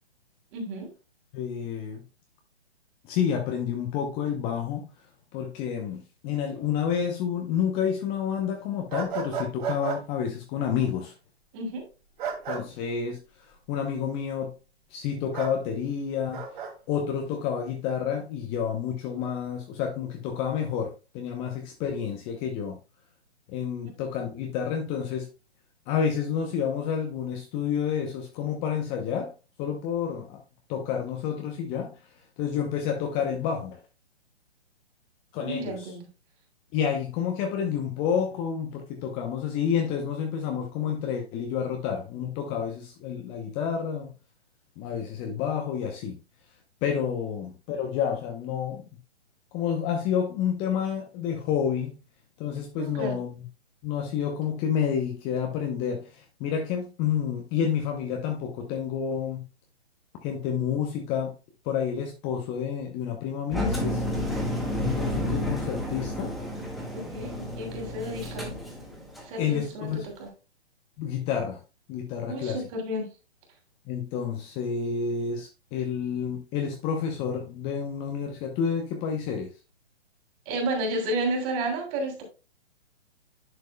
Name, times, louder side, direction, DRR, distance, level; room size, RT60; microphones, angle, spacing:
voice 1, 0.5-0.9 11.5-11.9 35.4-36.0 47.2-47.3 52.8-53.2 66.9-68.6 69.2-70.3 72.3-73.1 80.5-82.2, right 1 dB, 25° right, 2.8 m, -32 dB
voice 2, 1.3-2.0 3.0-4.9 5.3-11.1 12.5-14.5 14.9-16.5 16.9-22.8 23.5-25.3 25.9-29.3 29.6-30.4 30.7-32.0 32.4-33.8 35.3-35.9 36.7-44.1 44.8-46.2 46.8-48.9 49.5-52.0 52.4-53.4 53.8-59.4 60.2-61.4 61.6-64.0 64.8-66.3 69.4-70.1 71.0-71.6 71.9-72.6 73.9-79.5, left 7 dB, 20° left, 0.7 m, -29 dB
sound 1, 8.9-10.0 12.2-12.6 15.3-15.5 16.3-16.7, right 6 dB, 45° right, 2.4 m, -32 dB
Engine, 63.5-69.3, left 1 dB, ahead, 1.5 m, -31 dB
11.0 x 6.2 x 2.2 m
figure-of-eight pair, 130°, 33 cm